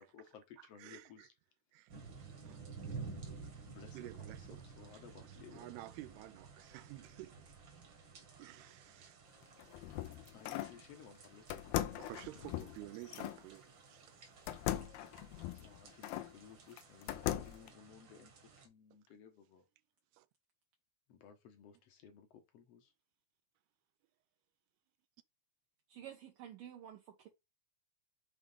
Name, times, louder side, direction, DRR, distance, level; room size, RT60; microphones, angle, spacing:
voice 1, 0.0-1.3 3.6-5.7 10.3-12.4 15.6-18.3 18.6-19.6 21.1-22.9, left 8 dB, 65° left, 1.6 m, -57 dB
voice 2, 0.8-1.3 1.7-2.0 2.5-2.6 3.9-4.6 5.2-7.5 8.4-9.2 12.0-14.3 20.1-20.3, right 17 dB, 90° right, 2.7 m, -52 dB
sound 1, 1.9-18.7, right 5 dB, 45° right, 1.7 m, -53 dB
sound 2, 9.4-10.8 11.5-13.4 14.5-16.3 16.8-17.7, left 13 dB, 90° left, 2.6 m, -39 dB
voice 3, 25.9-27.3, right 10 dB, 70° right, 2.3 m, -51 dB
7.4 x 3.5 x 5.5 m
omnidirectional pair, 4.5 m